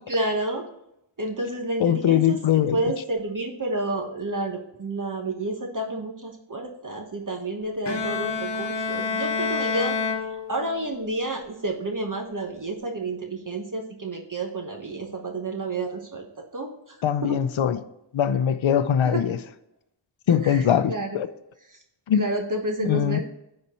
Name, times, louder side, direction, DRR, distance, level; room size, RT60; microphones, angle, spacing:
voice 1, 0.1-0.7 1.2-16.3 16.5-17.4 19.0-19.2 20.4-21.2 21.7-21.8 22.1-23.2, right 2 dB, 40° right, 1.2 m, -30 dB
voice 2, 1.8-2.8 17.0-17.8 18.1-19.4 20.3-21.3 22.1-22.2 22.8-23.2, left 9 dB, 75° left, 0.6 m, -21 dB
Bowed string instrument, 7.9-11.0, left 4 dB, 60° left, 1.1 m, -28 dB
9.6 x 4.4 x 4.2 m
wide cardioid pair, 95°, 47 cm